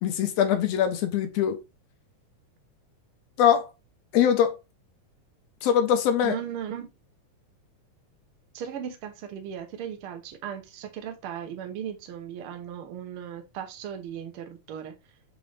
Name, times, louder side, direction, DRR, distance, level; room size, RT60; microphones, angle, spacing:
voice 1, 0.0-1.6 3.4-3.7 4.1-4.6 5.6-6.3, left 9 dB, 75° left, 1.5 m, -22 dB
voice 2, 6.2-6.9 8.5-14.9, right 9 dB, 75° right, 1.2 m, -37 dB
6.0 x 2.6 x 3.1 m
omnidirectional pair, 3.5 m